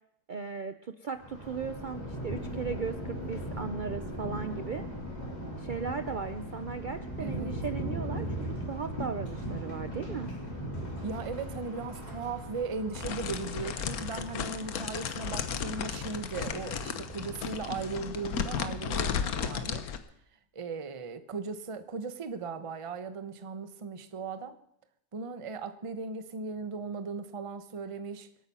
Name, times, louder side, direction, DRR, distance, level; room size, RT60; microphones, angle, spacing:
voice 1, 0.3-4.8 5.6-10.3, right 5 dB, 85° right, 10 dB, 0.4 m, -37 dB
Thunder, 1.2-18.6, equal, 25° left, 3.4 m, -39 dB
voice 2, 7.2-7.5 11.0-19.9 20.5-24.6 25.1-28.3, right 4 dB, 25° right, 10 dB, 0.7 m, -37 dB
sound 1, 12.9-20.0, left 7 dB, 65° left, 1.4 m, -34 dB
25.0 x 8.9 x 5.5 m, 0.74 s
omnidirectional pair, 1.7 m